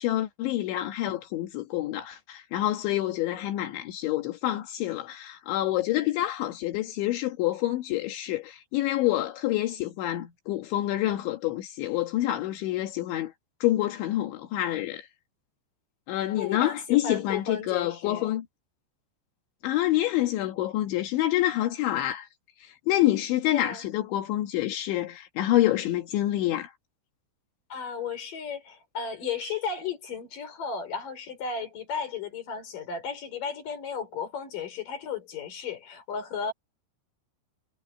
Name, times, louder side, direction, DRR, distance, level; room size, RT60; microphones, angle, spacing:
voice 1, 0.0-13.3 13.6-15.1 16.1-18.5 19.6-22.3 22.6-26.7, left 14 dB, 80° left, 4.1 m, -27 dB
voice 2, 16.4-18.3 23.5-23.8 27.7-36.5, left 6 dB, 45° left, 6.1 m, -34 dB
omnidirectional pair, 5.3 m